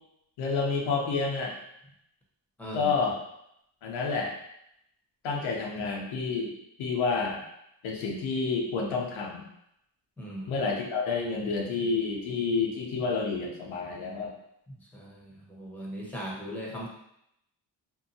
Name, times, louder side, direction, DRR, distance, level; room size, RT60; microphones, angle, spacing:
voice 1, 0.4-1.5 2.7-3.2 3.8-4.3 5.2-6.5 6.8-7.4 7.8-9.4 10.5-14.3, left 4 dB, 90° left, -1 dB, 0.7 m, -29 dB
voice 2, 2.6-2.9 10.2-10.5 14.7-16.9, equal, 5° left, -4 dB, 0.8 m, -39 dB
2.7 x 2.2 x 2.6 m, 0.78 s
cardioid pair, 70°, 46 cm